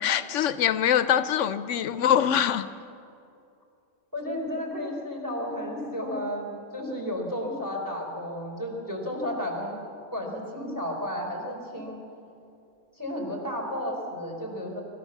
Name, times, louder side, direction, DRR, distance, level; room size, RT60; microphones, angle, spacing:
voice 1, 0.0-2.7, left 9 dB, 80° left, 13 dB, 1.0 m, -23 dB
voice 2, 4.1-9.8 10.1-12.0 13.0-14.8, left 1 dB, 15° right, 1 dB, 4.5 m, -32 dB
25.0 x 14.5 x 7.2 m, 2.6 s
omnidirectional pair, 1.2 m